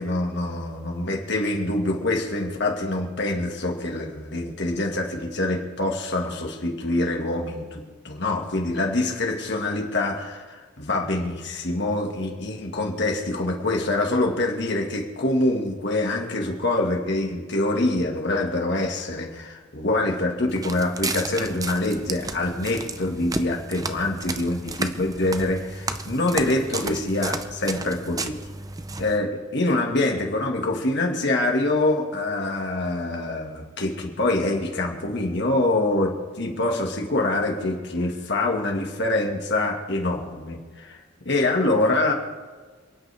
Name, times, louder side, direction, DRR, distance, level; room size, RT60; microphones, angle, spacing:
voice 1, 0.0-28.4 29.0-41.0 41.3-42.1, left 2 dB, 55° left, 1 dB, 2.0 m, -25 dB
Walk footsteps, 20.5-29.2, right 3 dB, 15° right, 0.6 m, -33 dB
28.5 x 9.5 x 3.5 m, 1.4 s
head